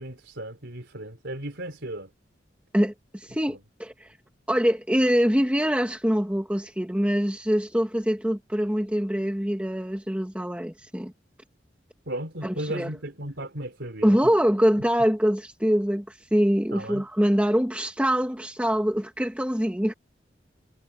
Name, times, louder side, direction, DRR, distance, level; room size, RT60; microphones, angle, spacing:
voice 1, 0.0-2.1 3.5-3.6 12.1-14.2 16.7-17.0, right 1 dB, 90° right, 3.7 m, -35 dB
voice 2, 2.7-4.2 4.5-11.1 12.4-12.9 14.0-19.9, equal, 5° right, 1.7 m, -24 dB
head